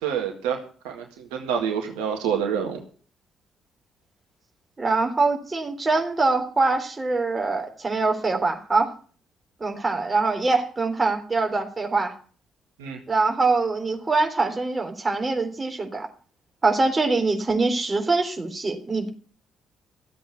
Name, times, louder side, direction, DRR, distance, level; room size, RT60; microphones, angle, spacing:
voice 1, 0.0-0.6 0.8-1.0 1.3-2.8 12.8-13.0, right 7 dB, 75° right, 3 dB, 1.9 m, -27 dB
voice 2, 4.8-8.9 9.6-12.1 13.1-16.1 16.6-19.1, right 3 dB, 25° right, 4 dB, 3.5 m, -23 dB
14.0 x 8.1 x 8.4 m, 0.42 s
hypercardioid pair, 45°, 0 cm